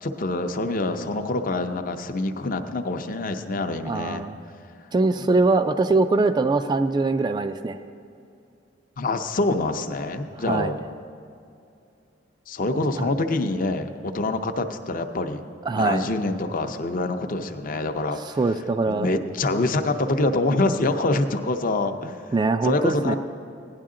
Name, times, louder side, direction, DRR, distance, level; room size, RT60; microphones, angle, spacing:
voice 1, 0.0-4.3 9.0-10.8 12.5-15.4 15.7-18.4 18.9-22.2 22.6-23.2, left 2 dB, 50° left, 6 dB, 0.6 m, -25 dB
voice 2, 3.8-4.3 4.9-7.8 10.4-10.7 13.0-13.1 15.7-16.1 18.4-19.1 22.3-23.2, right 3 dB, 25° right, 8 dB, 0.3 m, -22 dB
17.0 x 10.5 x 3.8 m, 2.5 s
head